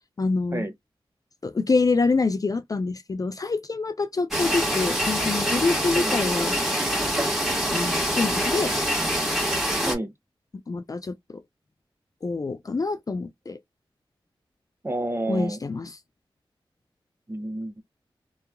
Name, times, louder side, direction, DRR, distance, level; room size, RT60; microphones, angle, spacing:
voice 1, 0.2-0.6 1.4-7.0 7.7-8.7 10.7-11.4 12.2-13.6 15.3-15.9, left 3 dB, 40° left, 0.4 m, -26 dB
sound 1, 4.3-10.0, equal, ahead, 1.3 m, -25 dB
voice 2, 14.8-15.6 17.3-17.8, right 1 dB, 25° right, 0.8 m, -29 dB
2.9 x 2.4 x 2.2 m
cardioid pair, 45°, 10 cm